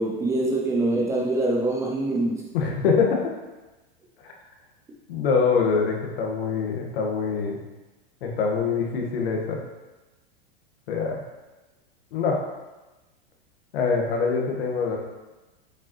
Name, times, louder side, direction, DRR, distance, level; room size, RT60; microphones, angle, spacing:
voice 1, 0.0-2.5, right 2 dB, 10° right, -2 dB, 0.4 m, -24 dB
voice 2, 2.5-3.3 5.1-7.6 8.2-9.6 10.9-11.2 12.1-12.4 13.7-15.0, left 5 dB, 80° left, 0 dB, 1.5 m, -24 dB
7.3 x 4.9 x 3.1 m, 1.1 s
supercardioid pair, 165°, 29 cm